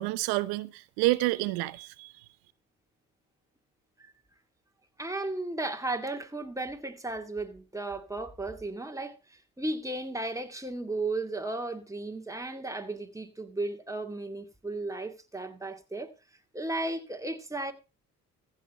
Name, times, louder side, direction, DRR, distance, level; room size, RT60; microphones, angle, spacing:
voice 1, 0.0-2.1, right 19 dB, 85° right, 0.7 m, -29 dB
voice 2, 5.0-16.1 16.5-17.7, right 2 dB, 10° right, 2.1 m, -35 dB
15.0 x 5.9 x 5.4 m
supercardioid pair, 55°, 36 cm